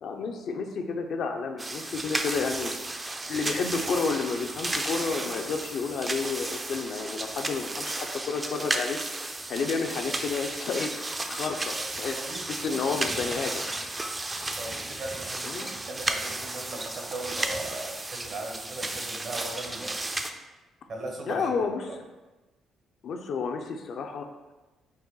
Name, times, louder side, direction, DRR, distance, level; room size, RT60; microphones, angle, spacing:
voice 1, 0.0-2.7 3.3-9.0 9.5-10.9 11.2-12.2 12.5-13.6 15.4-15.7 21.3-22.0 23.0-24.3, left 5 dB, 70° left, 4 dB, 0.4 m, -31 dB
sound 1, 1.6-20.3, right 2 dB, 20° right, 0.4 m, -33 dB
voice 2, 12.1-13.6 14.6-20.0 20.9-21.5 21.9-22.0, right 2 dB, 60° right, 2 dB, 0.8 m, -39 dB
4.1 x 2.6 x 3.7 m, 1.1 s
cardioid pair, 90°, 0 cm